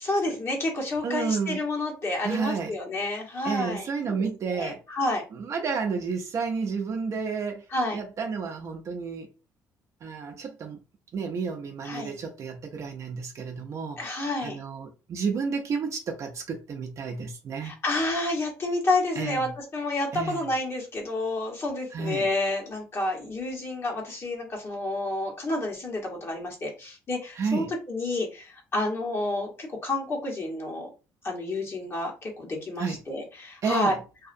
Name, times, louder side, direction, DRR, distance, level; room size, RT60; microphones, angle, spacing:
voice 1, 0.0-4.3 4.5-5.2 7.7-8.0 11.8-12.1 14.0-14.6 17.6-30.9 31.2-33.9, left 2 dB, 40° left, 1.3 m, -29 dB
voice 2, 1.0-1.6 2.2-2.7 3.4-4.8 5.3-7.7 7.9-9.3 10.0-10.8 11.1-17.7 19.2-19.5 20.1-20.5 21.9-22.3 27.4-27.7 32.8-33.0 33.6-34.0, right 5 dB, 50° right, 0.6 m, -31 dB
2.7 x 2.4 x 2.5 m
cardioid pair, 90°, 7 cm